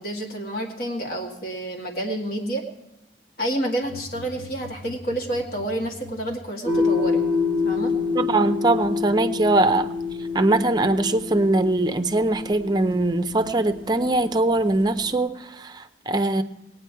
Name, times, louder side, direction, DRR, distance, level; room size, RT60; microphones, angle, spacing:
voice 1, 0.0-2.6 3.4-7.2 7.6-7.9, right 1 dB, 55° left, 0 dB, 2.0 m, -29 dB
sound 1, 3.8-7.1, left 3 dB, 80° left, 0.7 m, -43 dB
sound 2, 6.6-15.2, left 4 dB, 25° left, 1.0 m, -27 dB
voice 2, 8.2-9.9 10.3-16.4, right 2 dB, 25° right, 9 dB, 0.5 m, -22 dB
19.0 x 9.2 x 4.6 m, 0.92 s
head